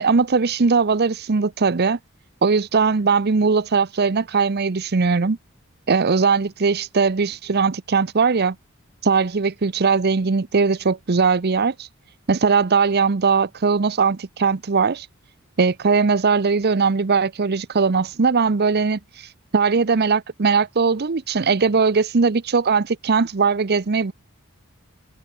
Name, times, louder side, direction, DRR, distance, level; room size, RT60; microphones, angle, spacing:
voice 1, 0.0-2.0 2.4-5.4 5.9-8.6 9.0-11.9 12.3-15.1 15.6-24.1, right 5 dB, 50° right, 0.7 m, -20 dB
head